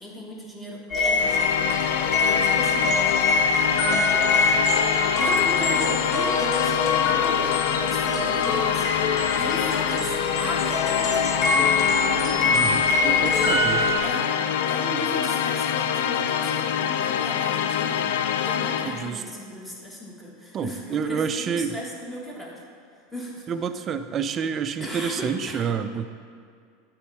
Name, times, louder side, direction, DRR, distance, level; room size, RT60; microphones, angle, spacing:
voice 1, 0.0-1.7 2.1-3.0 3.6-4.3 5.1-9.0 9.3-11.8 12.1-12.5 13.0-13.3 13.6-14.4 14.7-18.1 18.3-22.6 22.9-23.5 24.8-25.6, equal, 10° left, -3 dB, 1.4 m, -36 dB
sound 1, 0.9-14.0, left 3 dB, 45° left, 1.2 m, -24 dB
sound 2, 1.1-19.1, left 9 dB, 75° left, 0.3 m, -25 dB
voice 2, 12.5-13.8 18.9-19.2 20.5-21.7 23.5-26.1, right 7 dB, 35° right, 10 dB, 0.4 m, -28 dB
8.1 x 3.1 x 4.8 m, 2.2 s
hypercardioid pair, 100°, 0 cm